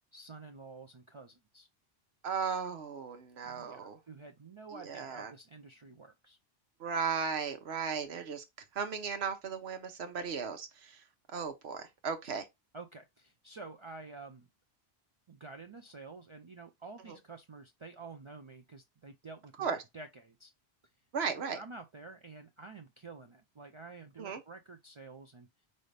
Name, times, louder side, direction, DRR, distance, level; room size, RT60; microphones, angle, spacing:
voice 1, 0.1-1.7 3.4-6.4 12.7-14.5 15.3-19.7 19.9-20.5 21.4-25.5, right 3 dB, 45° right, 0.4 m, -49 dB
voice 2, 2.2-4.0 4.7-5.3 6.8-8.4 8.7-11.0 11.3-12.5 17.1-17.2 19.6-19.8 21.1-21.6 24.2-24.4, right 6 dB, 80° right, 1.1 m, -36 dB
5.4 x 2.6 x 3.2 m
omnidirectional pair, 1.1 m